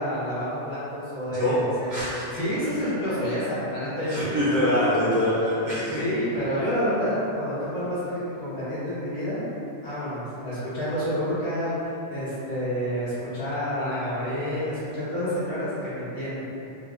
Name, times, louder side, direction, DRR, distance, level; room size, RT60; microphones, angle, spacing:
voice 1, 0.0-2.0 2.3-4.4 6.0-9.5 9.8-16.4, equal, 60° left, -12 dB, 1.3 m, -29 dB
voice 2, 1.9-2.4 4.1-6.0, left 1 dB, 50° right, -11 dB, 0.6 m, -24 dB
3.4 x 2.2 x 2.3 m, 2.9 s
omnidirectional pair, 1.2 m